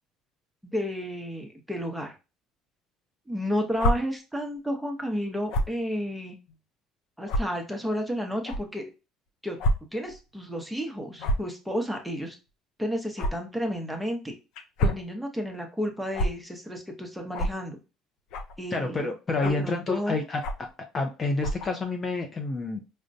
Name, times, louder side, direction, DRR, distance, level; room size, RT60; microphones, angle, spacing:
voice 1, 0.6-2.1 3.3-6.4 7.2-8.8 9.4-9.6 9.9-12.4 12.8-14.3 14.8-17.8 18.6-19.1 19.4-20.2, equal, ahead, 2 dB, 0.8 m, -32 dB
sound 1, 3.8-3.9 5.5-5.7 6.5-6.6 7.3-7.4 8.5-8.6 9.6-9.7 10.1-10.2 11.2-11.5 13.2-13.3 14.6-15.0 16.1-16.3 17.3-17.5 18.3-18.6 19.4-19.7 20.4-20.7 21.4-21.7, equal, 70° left, 0.5 m, -26 dB
voice 2, 18.7-20.4 20.9-22.8, left 3 dB, 25° left, 3 dB, 0.5 m, -28 dB
5.0 x 2.1 x 2.6 m, 0.29 s
cardioid pair, 125°, 0 cm